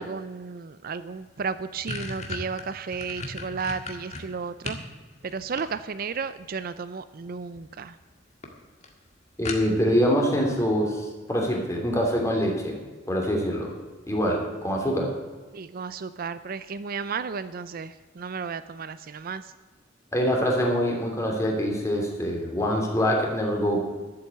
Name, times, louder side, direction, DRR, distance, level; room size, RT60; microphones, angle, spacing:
voice 1, 0.0-4.8 5.2-8.0 15.5-19.5, right 5 dB, 50° right, 13 dB, 0.5 m, -33 dB
sound 1, 1.0-1.1 1.4-4.9 5.3-6.1 7.2-7.7 8.0-8.1 8.4-8.5 8.8-8.9 9.4-10.0, left 3 dB, 35° left, 1.8 m, -36 dB
voice 2, 9.4-12.7 13.1-13.7 14.1-15.1 20.1-23.8, equal, 15° left, 0 dB, 2.9 m, -24 dB
12.5 x 7.8 x 8.2 m, 1.4 s
head